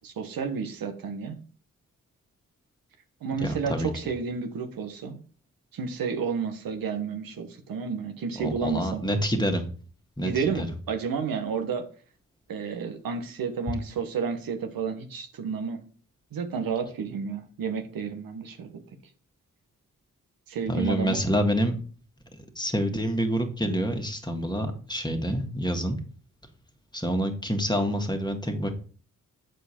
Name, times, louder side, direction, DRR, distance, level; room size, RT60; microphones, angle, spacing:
voice 1, 0.0-1.4 3.2-5.2 5.7-9.0 10.2-11.8 12.5-15.8 16.3-18.7 20.5-21.2, right 5 dB, 90° right, 6 dB, 1.1 m, -31 dB
voice 2, 3.4-3.9 8.4-9.7 10.2-10.7 20.7-21.8 22.5-26.0 26.9-28.7, equal, 10° left, 4 dB, 1.7 m, -27 dB
7.7 x 4.6 x 4.3 m, 0.42 s
cardioid pair, 50°, 34 cm